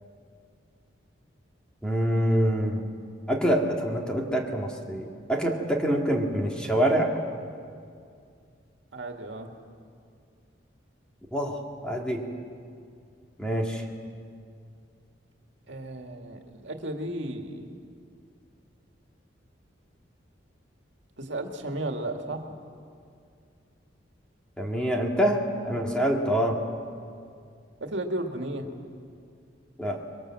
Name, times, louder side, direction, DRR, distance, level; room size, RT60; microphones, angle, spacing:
voice 1, 1.8-2.8 3.3-7.2 11.3-12.2 13.4-13.8 24.6-26.6 29.8-30.0, equal, 5° left, 0 dB, 2.2 m, -26 dB
voice 2, 8.9-9.5 15.7-17.7 21.2-22.4 27.8-28.7, right 1 dB, 75° right, 3 dB, 2.0 m, -34 dB
25.5 x 22.5 x 7.6 m, 2.3 s
head